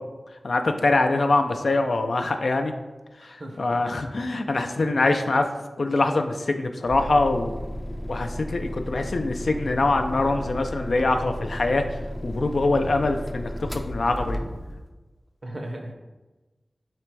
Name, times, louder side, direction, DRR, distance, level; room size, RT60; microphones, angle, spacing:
voice 1, 0.4-2.7 3.2-5.5 5.8-7.5 8.1-11.8 12.2-14.4, left 2 dB, 75° left, 5 dB, 0.3 m, -24 dB
voice 2, 3.2-3.8 15.4-15.9, right 1 dB, 55° right, 2 dB, 0.7 m, -36 dB
sound 1, 6.9-14.9, equal, 5° left, 0.4 m, -34 dB
3.3 x 3.0 x 4.6 m, 1.2 s
wide cardioid pair, 70°, 0 cm